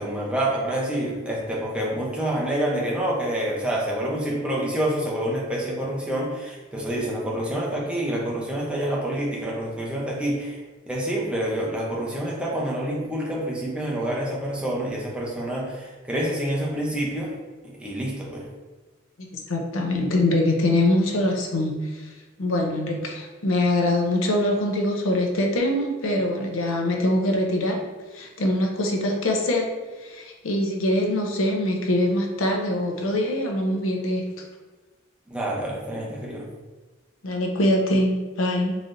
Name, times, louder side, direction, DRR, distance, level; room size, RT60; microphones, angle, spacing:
voice 1, 0.0-10.6 10.9-17.3 17.8-18.4 35.3-36.5, right 1 dB, 5° right, -4 dB, 0.7 m, -27 dB
voice 2, 19.5-21.8 22.4-27.8 28.1-29.7 30.0-34.2 37.2-38.7, left 1 dB, 85° left, 1 dB, 0.6 m, -23 dB
3.9 x 3.2 x 2.6 m, 1.3 s
head